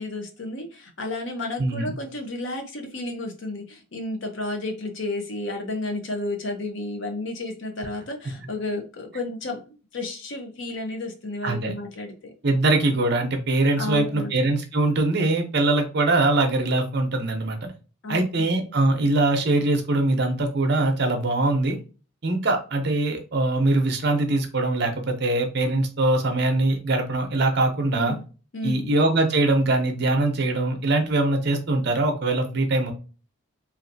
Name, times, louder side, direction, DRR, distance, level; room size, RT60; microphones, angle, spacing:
voice 1, 0.0-12.3 13.8-14.3 18.0-18.5 27.9-28.2 28.5-28.9, left 2 dB, 60° left, 3 dB, 0.6 m, -32 dB
voice 2, 1.6-2.0 11.4-11.7 12.4-17.7 18.1-21.8 22.2-28.1 28.6-32.9, right 2 dB, 50° right, 5 dB, 0.7 m, -22 dB
3.1 x 2.6 x 2.6 m, 0.35 s
head